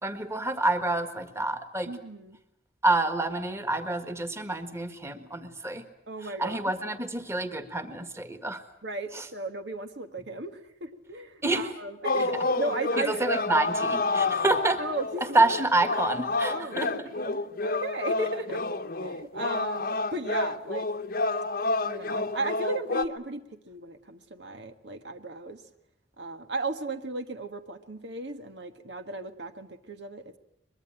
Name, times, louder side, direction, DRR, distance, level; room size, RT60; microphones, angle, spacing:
voice 1, 0.0-1.9 2.8-5.8 6.2-8.6 9.1-9.2 11.4-11.7 12.2-12.3 13.0-14.8 15.3-16.9, right 2 dB, 15° right, 8 dB, 1.7 m, -28 dB
voice 2, 1.8-2.4 6.1-6.7 8.8-13.3 14.8-15.4 16.5-16.8 17.2-18.6 19.0-20.9 21.8-25.6 26.2-30.4, right 2 dB, 85° right, 7 dB, 1.7 m, -35 dB
sound 1, 12.0-23.0, left 3 dB, 55° left, 1.0 m, -29 dB
23.5 x 22.0 x 9.0 m, 0.79 s
head